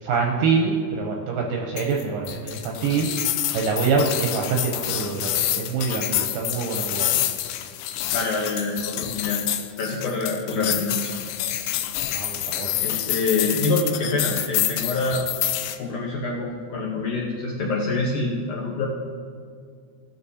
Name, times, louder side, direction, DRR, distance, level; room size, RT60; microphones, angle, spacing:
voice 1, 0.0-3.1 3.5-7.1 10.6-10.7 12.1-12.7, right 5 dB, 80° right, 0 dB, 2.0 m, -25 dB
sound 1, 1.8-15.8, left 13 dB, 85° left, 2.6 m, -27 dB
voice 2, 8.1-9.4 9.8-11.2 12.8-15.2 15.8-18.9, left 3 dB, 70° left, -3 dB, 2.0 m, -26 dB
16.0 x 6.7 x 2.7 m, 2.2 s
omnidirectional pair, 4.7 m